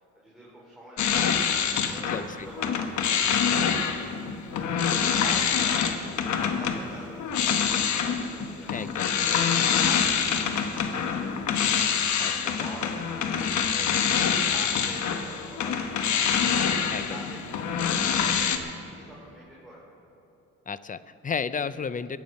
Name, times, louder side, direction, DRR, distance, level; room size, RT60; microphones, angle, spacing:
voice 1, 0.2-15.8 16.1-19.8, right 1 dB, ahead, -6 dB, 3.9 m, -46 dB
sound 1, 1.0-2.3 2.6-18.6, left 7 dB, 70° left, 1.2 m, -26 dB
voice 2, 2.1-2.5 8.7-9.1 12.2-12.3 12.6-12.7 16.9-17.2 20.7-22.2, left 6 dB, 25° left, 15 dB, 0.5 m, -32 dB
22.0 x 9.3 x 5.3 m, 2.9 s
cardioid pair, 90°, 30 cm